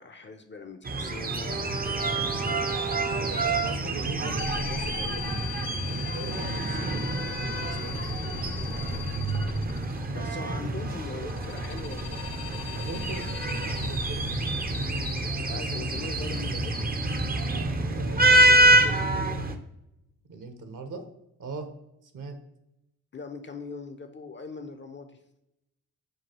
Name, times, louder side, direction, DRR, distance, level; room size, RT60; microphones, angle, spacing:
voice 1, 0.0-2.6 6.0-6.2 8.9-9.3 10.1-12.3 15.4-16.7 18.1-18.3 23.1-25.2, left 4 dB, 30° left, 7 dB, 0.5 m, -41 dB
sound 1, 0.8-19.6, right 1 dB, 25° right, 0.5 m, -27 dB
voice 2, 3.1-5.4 5.9-7.1 7.5-8.1 12.7-13.3 13.6-14.4 15.5-15.6 17.9-19.5 20.3-21.1 21.4-21.7 22.0-22.4, right 4 dB, 50° right, 6 dB, 0.8 m, -40 dB
sound 2, 4.4-10.2 11.0-16.0, left 9 dB, 80° left, 0.5 m, -39 dB
6.0 x 2.3 x 2.9 m, 0.85 s
hypercardioid pair, 40°, 40 cm